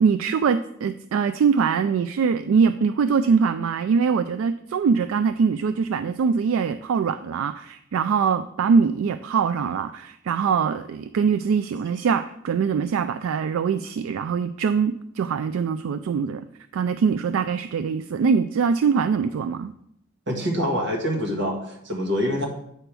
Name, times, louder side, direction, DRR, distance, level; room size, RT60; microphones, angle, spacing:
voice 1, 0.0-16.5 16.7-19.7, right 6 dB, 75° right, 12 dB, 0.3 m, -23 dB
voice 2, 20.3-22.5, equal, 55° right, -1 dB, 1.7 m, -25 dB
9.0 x 3.4 x 6.0 m, 0.76 s
head